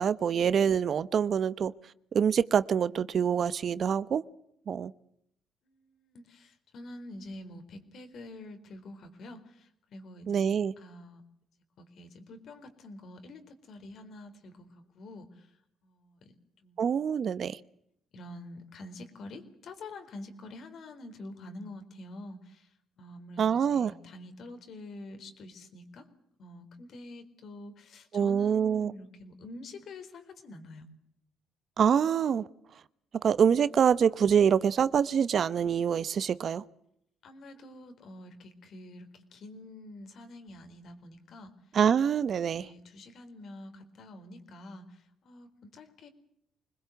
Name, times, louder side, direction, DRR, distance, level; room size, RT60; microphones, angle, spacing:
voice 1, 0.0-1.7 2.1-4.2 4.7-4.9 10.3-10.7 16.8-17.6 23.4-23.9 28.1-28.9 31.8-32.5 33.2-36.6 41.7-42.6, right 7 dB, 50° right, 0.9 m, -25 dB
voice 2, 5.6-10.5 10.8-11.2 11.8-16.9 18.1-26.1 26.4-30.8 37.2-41.5 42.6-46.1, left 2 dB, 60° left, 4.2 m, -47 dB
25.5 x 20.5 x 8.1 m
cardioid pair, 95°, 0 cm